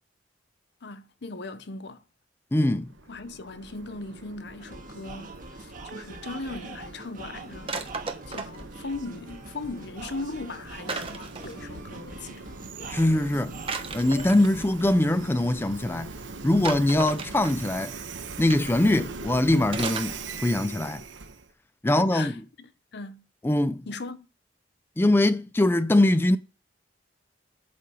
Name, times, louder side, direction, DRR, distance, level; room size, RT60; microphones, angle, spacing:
voice 1, 0.8-2.0 3.1-7.7 8.3-12.5 21.9-23.3 23.9-24.3, left 3 dB, 65° left, 0.8 m, -38 dB
voice 2, 2.5-2.9 12.9-13.5 13.9-16.1 16.4-17.9 18.4-21.0 21.8-22.3 23.4-23.8 25.0-26.4, left 1 dB, 10° left, 0.4 m, -22 dB
Train, 2.7-21.5, right 4 dB, 80° right, 1.0 m, -42 dB
sound 1, 4.6-14.6, right 2 dB, 45° right, 1.7 m, -44 dB
sound 2, 7.7-8.7 10.9-11.6 13.7-14.9 16.6-17.8 18.5-18.8 19.7-20.3 20.5-20.6, right 4 dB, 30° right, 1.1 m, -35 dB
8.3 x 5.1 x 6.2 m
head